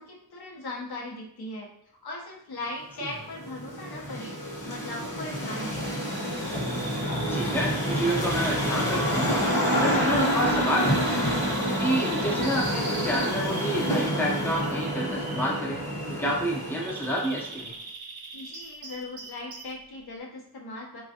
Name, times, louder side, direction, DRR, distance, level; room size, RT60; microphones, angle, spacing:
voice 1, 0.0-4.4 4.6-5.9 18.3-21.0, left 2 dB, 75° left, -2 dB, 0.8 m, -39 dB
sound 1, 3.0-17.6, equal, 55° left, 1.2 m, -28 dB
Bird vocalization bird call bird song, 5.8-19.8, right 3 dB, 65° right, 0.6 m, -41 dB
voice 2, 7.3-11.4 11.8-15.8 16.2-17.7, equal, 5° left, -2 dB, 0.5 m, -29 dB
3.2 x 2.3 x 2.7 m, 0.68 s
wide cardioid pair, 125°, 38 cm